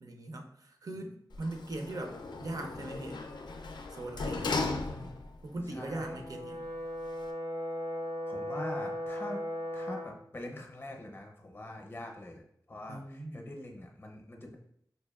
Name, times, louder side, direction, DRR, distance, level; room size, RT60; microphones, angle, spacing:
voice 1, 0.0-3.3 3.9-4.5 5.4-6.7 12.9-13.4, right 2 dB, 55° right, 4 dB, 0.5 m, -40 dB
Sliding door, 1.3-5.4 5.9-6.0, left 3 dB, 90° left, 0.3 m, -37 dB
voice 2, 4.8-5.1 5.7-6.2 8.3-9.4 9.7-14.6, left 1 dB, 30° left, 2 dB, 0.6 m, -44 dB
Brass instrument, 6.0-10.2, equal, 85° right, 0.9 m, -37 dB
4.4 x 2.8 x 2.3 m, 0.71 s
wide cardioid pair, 105°, 7 cm